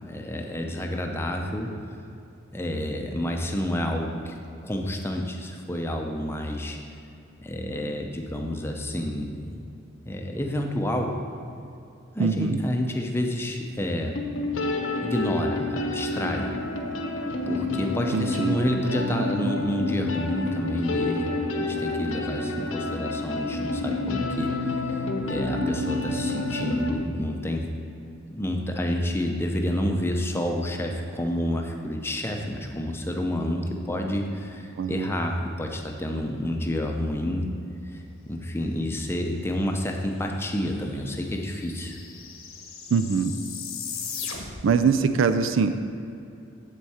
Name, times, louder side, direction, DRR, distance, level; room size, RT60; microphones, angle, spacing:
voice 1, 0.0-1.7 2.5-4.3 4.6-6.8 7.4-9.6 10.0-11.1 12.1-14.2 15.0-16.5 17.5-21.3 21.6-27.7 28.3-37.5 37.9-42.0, left 1 dB, 10° left, 2 dB, 0.6 m, -29 dB
voice 2, 12.2-12.6 18.1-18.5 34.8-35.1 42.9-43.3 44.6-45.8, right 5 dB, 65° right, 10 dB, 0.4 m, -23 dB
sound 1, 13.6-13.7 14.1-26.9, left 2 dB, 70° left, 0.9 m, -29 dB
sound 2, 40.3-40.4 40.6-44.8, left 6 dB, 85° left, 1.1 m, -38 dB
8.1 x 7.5 x 4.3 m, 2.6 s
head